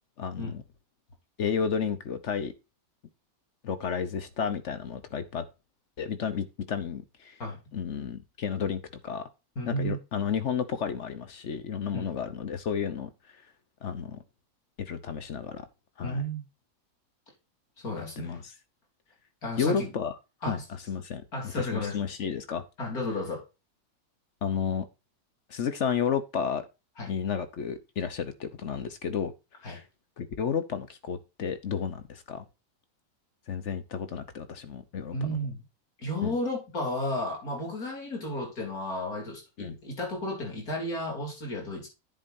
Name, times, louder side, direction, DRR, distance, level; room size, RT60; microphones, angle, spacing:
voice 1, 0.2-0.6 1.4-2.5 3.6-5.4 6.0-7.4 7.7-9.3 9.6-13.1 13.8-14.2 14.8-15.7 16.0-16.2 18.2-18.5 19.6-20.1 20.4-20.6 20.9-21.2 21.5-22.6 24.4-24.8 25.5-26.6 27.1-29.3 29.6-29.8 30.2-32.4 33.5-35.4 36.2-36.3 39.6-39.8, left 7 dB, 55° left, 1.1 m, -32 dB
voice 2, 9.6-10.0 11.9-12.1 16.0-16.4 17.8-18.4 19.4-19.9 20.4-20.6 21.3-22.0 22.8-23.5 27.0-27.1 29.6-29.8 35.1-35.6 36.0-41.9, left 1 dB, 80° left, 4.2 m, -33 dB
10.0 x 7.8 x 2.6 m
omnidirectional pair, 1.5 m